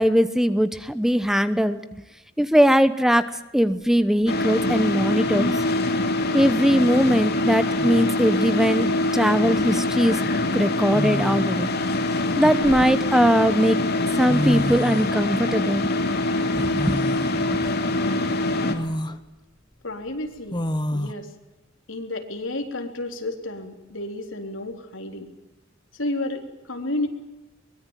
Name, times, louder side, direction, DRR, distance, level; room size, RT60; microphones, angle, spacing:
voice 1, 0.0-1.8 2.4-5.5 6.3-8.9 9.1-10.2 10.5-11.7 12.4-13.8 14.1-17.0 17.3-17.6, equal, ahead, 12 dB, 0.9 m, -20 dB
sound 1, 3.7-3.8 5.3-5.8 7.3-7.4 7.8-8.3 9.6-9.8 10.9-11.7 12.3-13.3 14.0-14.1 14.3-15.1 16.8-17.4 17.9-18.0 18.7-19.2 20.5-21.1, left 1 dB, 20° left, 1.3 m, -28 dB
sound 2, 4.3-18.8, left 2 dB, 55° left, 2.9 m, -24 dB
voice 2, 19.8-20.6 20.9-21.3 21.9-25.3 25.9-27.1, left 2 dB, 75° left, 4 dB, 3.9 m, -31 dB
23.5 x 21.5 x 9.2 m, 1.0 s
head